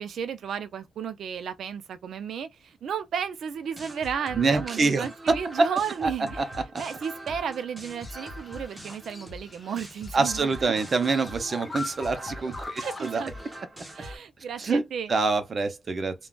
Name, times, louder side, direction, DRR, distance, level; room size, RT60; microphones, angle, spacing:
voice 1, 0.0-6.5 6.8-10.7 12.8-13.3 13.9-15.1, right 7 dB, 90° right, 0.5 m, -33 dB
sound 1, 3.6-14.2, right 1 dB, 20° right, 1.0 m, -42 dB
voice 2, 4.3-5.7 6.4-6.5 10.1-13.2 14.6-14.8 15.1-16.1, right 3 dB, 40° right, 0.6 m, -25 dB
sound 2, 7.9-13.6, left 3 dB, 20° left, 0.5 m, -42 dB
3.7 x 2.3 x 2.3 m
wide cardioid pair, 160°, 0 cm